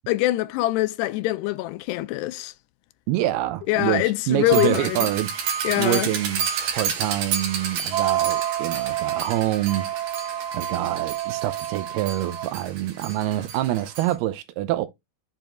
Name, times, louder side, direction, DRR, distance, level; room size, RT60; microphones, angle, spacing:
voice 1, 0.1-2.5 3.7-5.1 5.6-6.1, left 18 dB, 85° left, 2.6 m, -24 dB
voice 2, 3.1-5.3 5.8-6.5 6.8-9.9 10.5-14.9, right 14 dB, 80° right, 2.4 m, -26 dB
sound 1, 4.5-14.1, right 9 dB, 60° right, 2.8 m, -28 dB
7.9 x 4.5 x 3.0 m
omnidirectional pair, 4.9 m